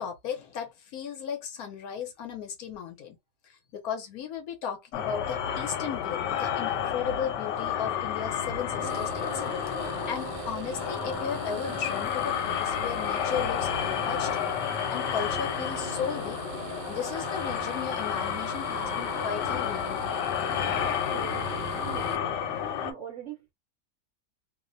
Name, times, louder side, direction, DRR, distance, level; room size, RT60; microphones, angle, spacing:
voice 1, 0.0-3.2 3.7-9.3 10.1-14.3 14.9-16.4 16.9-20.2, left 8 dB, 70° left, 1.0 m, -35 dB
sound 1, 4.9-22.9, left 8 dB, 90° left, 1.2 m, -31 dB
sound 2, 8.8-22.2, right 9 dB, 85° right, 1.2 m, -41 dB
voice 2, 20.8-22.4 22.8-23.5, right 8 dB, 65° right, 0.7 m, -42 dB
2.8 x 2.1 x 2.5 m
omnidirectional pair, 1.8 m